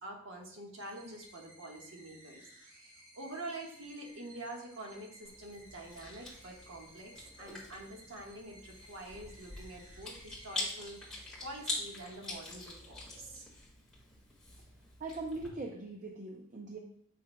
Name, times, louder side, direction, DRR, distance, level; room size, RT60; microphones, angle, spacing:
voice 1, 0.0-2.5 3.1-11.0 11.4-13.5, right 1 dB, 85° right, 0 dB, 1.4 m, -46 dB
sound 1, 0.8-12.7, equal, 25° right, 2.2 m, -58 dB
Chewing mastication, 5.2-15.5, left 2 dB, 5° left, 1.7 m, -44 dB
voice 2, 15.0-16.8, right 2 dB, 40° right, 1 dB, 0.5 m, -41 dB
7.7 x 5.7 x 2.2 m, 0.67 s
head